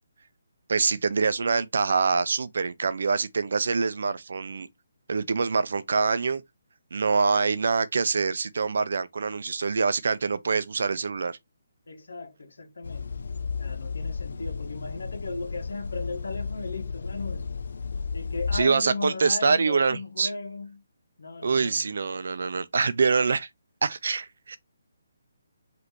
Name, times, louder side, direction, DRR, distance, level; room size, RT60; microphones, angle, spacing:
voice 1, 0.7-4.7 5.1-6.4 6.9-11.4 18.5-20.3 21.4-23.5 23.8-24.6, right 4 dB, 60° right, 0.6 m, -25 dB
voice 2, 11.9-13.1 13.6-17.5 18.1-20.8 21.2-21.9, left 3 dB, 80° left, 1.7 m, -36 dB
sound 1, 12.8-18.6, left 5 dB, 65° left, 0.4 m, -33 dB
5.1 x 3.3 x 3.1 m
hypercardioid pair, 170°, 0 cm